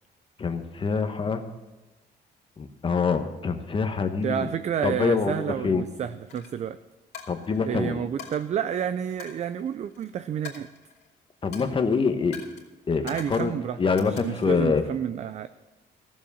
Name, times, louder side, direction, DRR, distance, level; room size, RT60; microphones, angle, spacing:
voice 1, 0.4-1.4 2.6-4.5 4.8-5.8 7.3-8.0 11.4-12.3 12.9-13.5 13.8-14.8, left 5 dB, 30° left, 8 dB, 1.1 m, -25 dB
voice 2, 4.2-6.8 7.6-10.7 13.0-15.5, right 8 dB, 40° right, 12 dB, 0.4 m, -30 dB
Coin (dropping), 6.3-6.5 7.1-7.7 8.2-8.4 9.2-10.0 10.4-11.1 11.5-11.8 12.3-12.6 13.1-13.5 14.0-14.6, left 7 dB, 65° left, 2.7 m, -43 dB
14.0 x 7.3 x 7.0 m, 1.1 s
cardioid pair, 130°, 18 cm